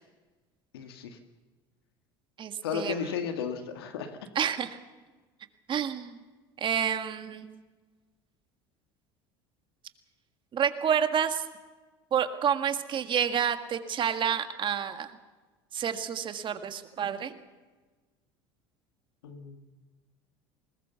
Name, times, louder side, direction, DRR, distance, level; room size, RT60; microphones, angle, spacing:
voice 1, 0.7-1.2 2.6-4.2 19.2-19.6, left 7 dB, 85° left, 7 dB, 1.7 m, -34 dB
voice 2, 2.4-3.1 4.4-4.8 5.7-6.2 6.6-7.6 10.5-11.5 12.1-15.1 15.7-17.4, right 8 dB, 40° right, 9 dB, 1.7 m, -29 dB
20.5 x 20.0 x 6.9 m, 1.3 s
hypercardioid pair, 80°, 12 cm